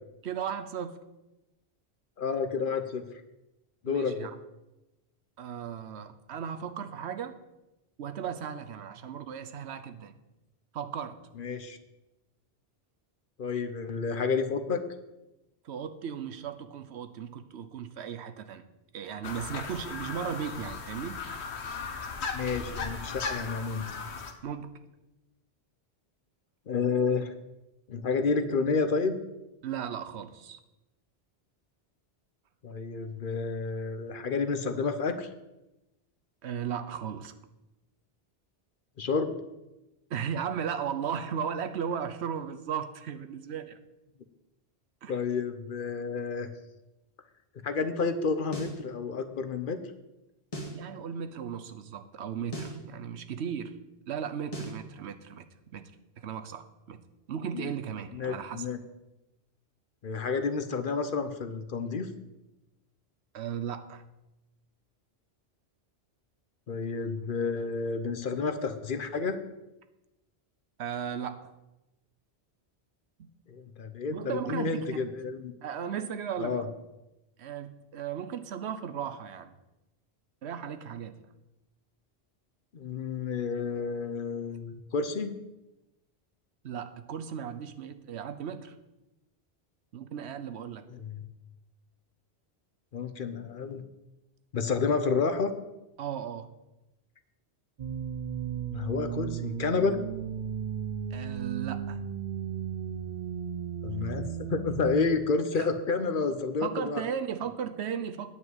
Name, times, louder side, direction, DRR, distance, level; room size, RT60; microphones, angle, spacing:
voice 1, 0.2-1.0 3.9-4.3 5.4-7.4 8.0-10.1 10.7-11.2 15.6-18.7 18.9-21.2 24.4-24.8 29.6-30.6 36.4-37.3 40.1-43.8 45.0-45.1 50.7-53.8 54.1-55.9 56.2-57.0 57.3-58.7 63.3-64.0 70.8-71.5 73.2-73.3 74.1-75.1 75.6-76.6 77.4-79.5 80.4-81.3 86.6-88.7 89.9-90.9 96.0-96.5 101.1-102.0 105.6-105.7 106.6-108.4, right 8 dB, 85° right, 10 dB, 1.0 m, -36 dB
voice 2, 2.2-3.0 3.8-4.3 11.4-11.8 13.4-14.8 22.3-23.9 26.7-27.3 27.9-29.2 32.6-35.3 39.0-39.3 45.1-46.5 47.6-49.8 57.5-57.7 58.1-58.8 60.0-62.1 66.7-69.4 73.5-75.5 76.4-76.7 82.7-85.3 90.9-91.2 92.9-93.8 94.5-95.5 98.7-100.0 103.8-107.0, left 4 dB, 55° left, 9 dB, 0.9 m, -30 dB
sound 1, 19.2-24.3, left 4 dB, 90° left, 1.3 m, -37 dB
sound 2, 48.5-48.8 50.5-50.8 52.5-52.8 54.5-54.8, right 1 dB, 30° left, 2.1 m, -37 dB
sound 3, 97.8-105.1, right 8 dB, 55° right, 0.5 m, -35 dB
9.5 x 5.5 x 8.0 m, 0.97 s
omnidirectional pair, 1.1 m